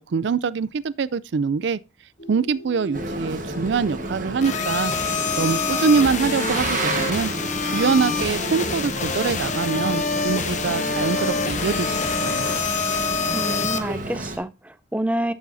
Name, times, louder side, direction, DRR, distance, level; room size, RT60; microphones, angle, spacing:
voice 1, 0.0-1.8 2.3-4.9 5.4-7.3 7.7-12.5, right 5 dB, 65° right, 0.4 m, -24 dB
sound 1, 2.2-10.3, left 1 dB, 60° left, 2.7 m, -40 dB
Boat Water vehicle, 2.9-14.4, right 2 dB, 40° right, 1.3 m, -31 dB
sound 2, 4.4-13.8, left 5 dB, 40° left, 0.9 m, -26 dB
voice 2, 13.3-15.3, right 1 dB, 5° right, 0.5 m, -28 dB
11.0 x 7.1 x 2.7 m
head